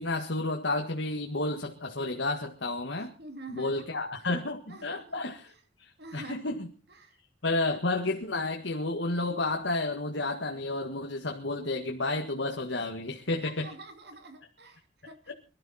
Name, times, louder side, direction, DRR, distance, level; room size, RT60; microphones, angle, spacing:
voice 1, 0.0-3.1 3.5-5.5 5.8-6.7 7.4-13.7 15.3-15.4, left 2 dB, 80° left, 2 dB, 1.9 m, -31 dB
voice 2, 3.0-3.8 4.7-5.2 6.0-6.6 7.0-7.1 13.4-15.3, right 2 dB, 60° right, 6 dB, 2.9 m, -46 dB
23.5 x 13.0 x 4.3 m, 0.37 s
head